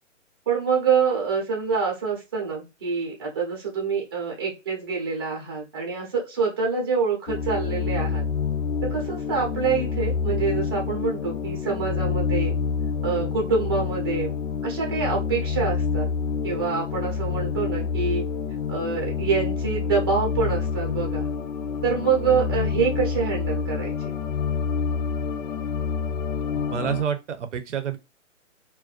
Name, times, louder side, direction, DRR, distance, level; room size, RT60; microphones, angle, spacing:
voice 1, 0.5-8.2 8.9-12.5 13.0-14.3 14.6-16.1 16.4-18.2 18.7-21.3 21.8-24.1, right 5 dB, 20° right, 0.6 m, -26 dB
sound 1, 7.3-27.0, left 6 dB, 80° left, 0.5 m, -27 dB
voice 2, 26.5-28.0, right 8 dB, 70° right, 0.6 m, -28 dB
2.5 x 2.2 x 2.3 m
hypercardioid pair, 165°, 38 cm